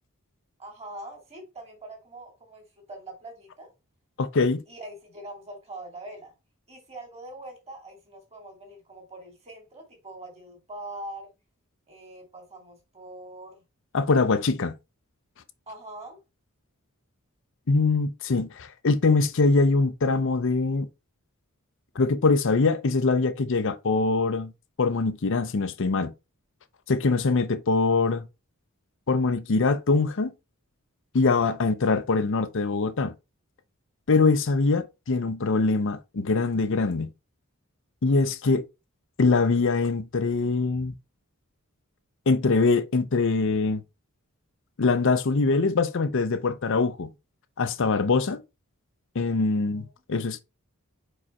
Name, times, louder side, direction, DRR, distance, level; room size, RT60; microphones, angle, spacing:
voice 1, 0.6-3.7 4.7-6.3 6.7-11.3 11.9-13.6 15.7-16.2 49.7-49.9, right 1 dB, 30° right, 2.5 m, -43 dB
voice 2, 4.2-4.6 13.9-14.8 17.7-20.9 22.0-24.5 24.8-26.1 26.9-28.2 29.1-30.3 31.1-33.1 34.1-37.1 38.0-38.6 39.2-40.9 42.3-43.8 44.8-47.1 47.6-48.4 49.1-50.4, left 3 dB, 60° left, 0.6 m, -23 dB
5.0 x 4.8 x 4.2 m
head